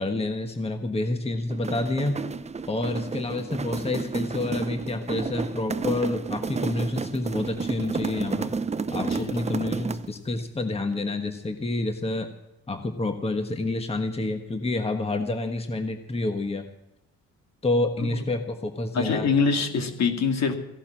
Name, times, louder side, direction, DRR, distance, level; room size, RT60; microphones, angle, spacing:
voice 1, 0.0-2.2 2.7-8.5 8.9-12.3 12.7-16.7 17.6-19.3, left 2 dB, 20° left, 6 dB, 1.4 m, -28 dB
sound 1, 1.5-10.2, right 4 dB, 20° right, 0.7 m, -31 dB
voice 2, 9.0-9.4 18.0-18.2 18.9-20.5, left 5 dB, 60° left, 5 dB, 2.4 m, -25 dB
15.5 x 11.5 x 7.5 m, 0.91 s
cardioid pair, 90°, 30 cm